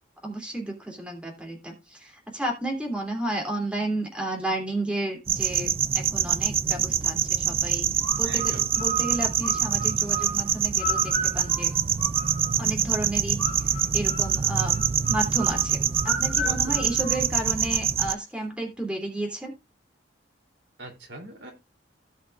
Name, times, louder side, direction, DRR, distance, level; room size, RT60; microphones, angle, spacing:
voice 1, 0.2-7.9 8.2-11.7 12.6-14.8 15.1-19.5, right 1 dB, 5° right, 1 dB, 2.8 m, -32 dB
sound 1, 5.3-18.1, right 9 dB, 35° right, 0.4 m, -25 dB
sound 2, 8.0-12.7 13.4-17.8, right 1 dB, 15° left, 2.9 m, -35 dB
voice 2, 8.2-8.7 16.4-16.9 20.8-21.5, right 1 dB, 75° right, 2 dB, 3.1 m, -41 dB
17.0 x 6.0 x 2.4 m, 0.24 s
head